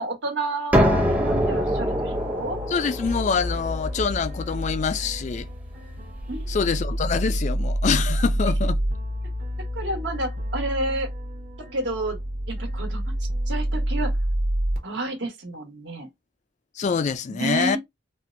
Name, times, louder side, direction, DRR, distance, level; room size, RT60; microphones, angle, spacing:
voice 1, 0.0-2.6 6.3-6.5 9.7-11.1 11.6-12.2 12.5-13.1 13.5-14.1 14.8-16.1 17.3-17.8, right 2 dB, 75° right, 1.3 m, -30 dB
sound 1, 0.7-6.3, equal, 10° right, 0.6 m, -25 dB
voice 2, 2.7-5.5 6.5-8.8 16.8-17.8, left 5 dB, 40° left, 0.3 m, -25 dB
sound 2, 3.1-14.8, right 1 dB, 45° right, 0.9 m, -28 dB
4.2 x 2.1 x 2.6 m
head